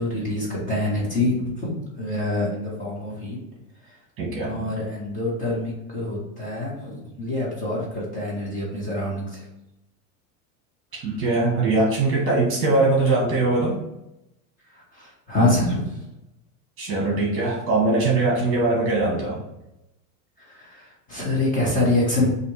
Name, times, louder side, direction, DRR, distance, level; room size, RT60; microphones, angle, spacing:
voice 1, 0.0-3.4 4.4-9.5 14.7-15.9 20.4-22.3, left 2 dB, 20° left, -6 dB, 1.4 m, -26 dB
voice 2, 4.2-4.7 10.9-13.8 16.8-19.4, right 2 dB, 35° right, -3 dB, 1.4 m, -21 dB
4.1 x 2.7 x 4.7 m, 0.89 s
supercardioid pair, 165°, 39 cm